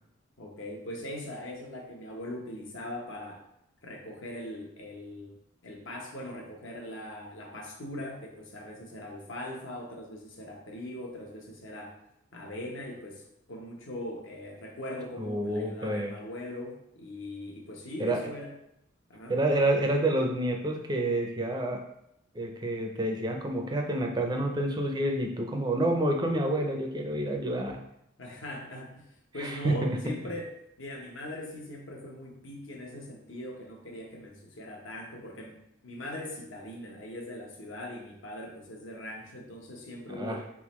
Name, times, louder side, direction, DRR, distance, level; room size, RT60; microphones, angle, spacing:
voice 1, 0.4-3.4 3.8-5.3 5.6-11.9 12.3-13.2 13.5-18.6 19.1-19.4 28.2-30.5 30.8-40.5, left 1 dB, 65° left, 0 dB, 1.0 m, -40 dB
voice 2, 15.2-16.1 18.0-18.2 19.3-21.8 22.3-27.8 29.4-30.0 40.1-40.5, right 1 dB, 20° right, 2 dB, 0.5 m, -28 dB
4.3 x 3.6 x 3.0 m, 0.79 s
head